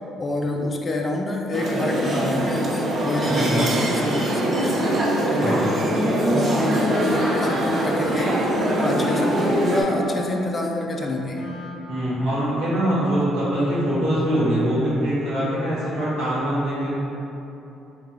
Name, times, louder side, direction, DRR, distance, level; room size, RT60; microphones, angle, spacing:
voice 1, 0.2-4.7 5.3-5.6 6.0-8.4 8.8-11.4, left 2 dB, 25° left, 0 dB, 0.3 m, -27 dB
sound 1, 1.5-9.8, right 1 dB, 40° right, 0.6 m, -23 dB
voice 2, 3.3-3.7 5.4-5.6 11.9-16.9, equal, 75° right, -9 dB, 1.4 m, -23 dB
Wind instrument woodwind instrument, 5.0-12.3, left 1 dB, 85° left, 0.5 m, -35 dB
3.6 x 2.8 x 3.3 m, 2.9 s
cardioid pair, 120°, 0 cm